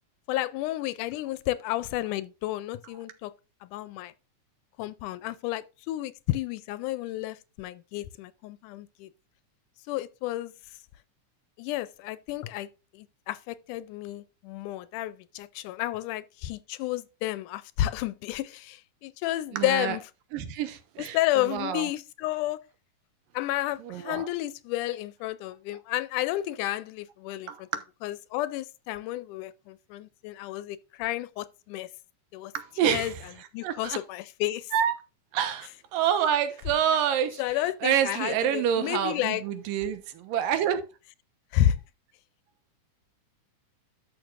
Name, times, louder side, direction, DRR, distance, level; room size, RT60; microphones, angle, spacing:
voice 1, 0.3-3.3 3.6-4.1 4.8-9.1 9.9-10.5 11.6-12.7 12.9-20.0 21.1-22.6 23.3-27.7 28.0-31.9 32.3-32.5 32.8-33.1 33.5-34.7 37.4-39.4 41.5-41.8, left 14 dB, 80° left, 2.0 m, -31 dB
voice 2, 19.5-20.0 20.3-21.9 23.8-24.3 27.5-27.6 32.5-33.2 33.6-34.0 34.7-34.9 35.3-40.8, right 9 dB, 85° right, 2.8 m, -27 dB
12.0 x 6.4 x 2.5 m
omnidirectional pair, 3.8 m